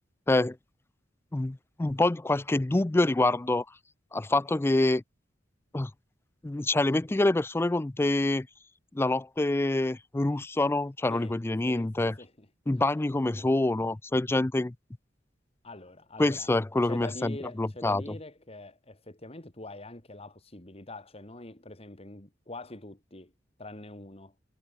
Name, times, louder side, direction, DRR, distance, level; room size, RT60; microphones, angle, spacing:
voice 1, 1.3-3.6 4.1-5.0 5.7-5.9 6.4-8.5 8.9-12.1 12.7-14.7 16.2-18.0, left 2 dB, 15° left, 0.4 m, -26 dB
voice 2, 11.1-12.5 15.6-16.5 16.8-23.3 23.6-24.3, left 2 dB, 35° left, 3.0 m, -44 dB
head